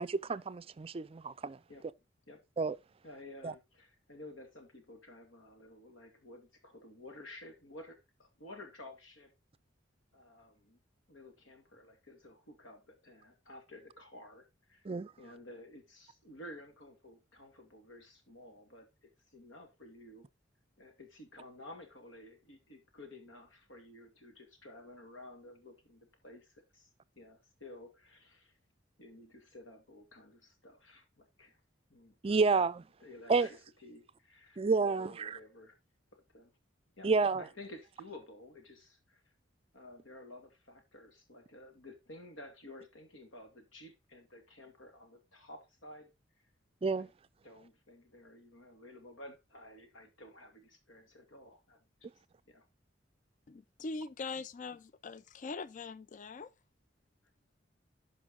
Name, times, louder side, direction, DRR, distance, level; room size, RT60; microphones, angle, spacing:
voice 1, 0.0-1.6 2.6-2.8 3.4-3.5 14.9-15.1 32.2-32.8 33.3-33.5 34.6-35.4 37.0-37.4 46.8-47.1, right 4 dB, 30° right, 0.4 m, -30 dB
voice 2, 3.0-9.3 10.1-10.8 11.1-14.9 15.2-20.2 20.8-26.9 27.2-28.5 29.0-31.6 31.9-32.6 33.0-35.8 36.1-36.5 37.0-39.3 39.7-46.1 47.0-47.1 47.4-51.8 52.5-52.6 54.4-54.5, left 1 dB, 80° left, 2.4 m, -53 dB
voice 3, 53.5-56.5, left 4 dB, 40° left, 0.4 m, -42 dB
11.5 x 5.3 x 3.7 m
head